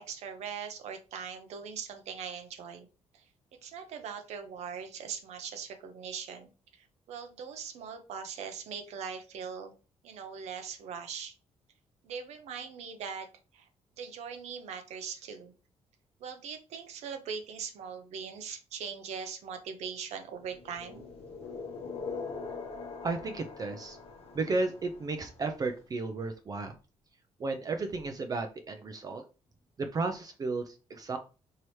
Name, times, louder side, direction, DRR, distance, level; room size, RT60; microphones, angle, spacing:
voice 1, 0.0-2.9 3.1-3.2 3.6-9.7 10.0-11.4 12.0-13.3 13.5-13.7 14.0-15.5 16.2-21.1, right 6 dB, 80° right, 7 dB, 0.7 m, -41 dB
sound 1, 20.5-25.5, left 4 dB, 65° left, 0.8 m, -42 dB
voice 2, 23.0-24.0 24.3-26.8 27.4-29.2 29.8-31.2, right 3 dB, 35° right, 6 dB, 0.5 m, -33 dB
4.6 x 2.9 x 3.1 m, 0.34 s
cardioid pair, 115°, 11 cm